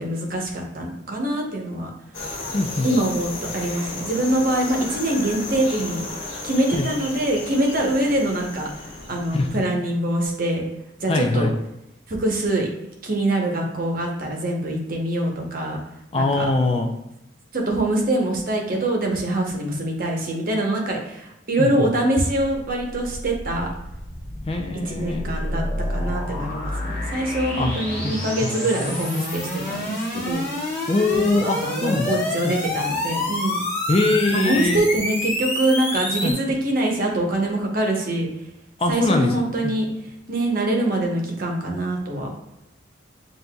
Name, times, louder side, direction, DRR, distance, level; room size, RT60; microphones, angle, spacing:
voice 1, 0.0-1.9 2.8-6.2 6.4-10.6 11.0-11.5 12.1-12.7 13.0-15.8 16.1-16.5 17.5-23.7 24.8-25.6 25.9-30.7 31.1-33.6 34.3-38.3 38.8-39.8 40.3-42.3, right 1 dB, 45° right, 1 dB, 0.9 m, -24 dB
sound 1, 2.1-9.7, left 2 dB, 75° left, 1.6 m, -34 dB
voice 2, 2.5-2.9 6.7-6.9 9.3-9.5 11.1-11.5 16.1-16.9 21.6-21.9 24.5-25.3 27.6-27.7 28.0-28.1 30.9-32.6 33.9-34.8 36.2-36.4 38.8-39.3 39.6-39.7, left 2 dB, 30° left, 4 dB, 0.3 m, -22 dB
sound 2, 22.6-36.3, left 1 dB, 15° left, 1.2 m, -28 dB
7.5 x 2.6 x 2.3 m, 0.84 s
head